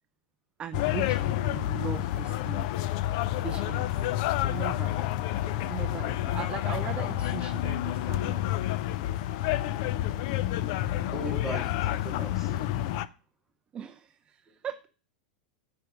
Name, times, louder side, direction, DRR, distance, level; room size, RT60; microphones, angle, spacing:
voice 1, 0.6-2.7 3.3-4.0 4.5-5.0 5.7-8.4 13.7-14.9, right 9 dB, 25° right, 0.4 m, -39 dB
sound 1, 0.7-13.1, left 13 dB, 55° left, 0.5 m, -29 dB
voice 2, 11.1-12.8 14.5-14.6, right 3 dB, 5° right, 2.1 m, -39 dB
7.7 x 5.8 x 4.9 m
hypercardioid pair, 110°, 5 cm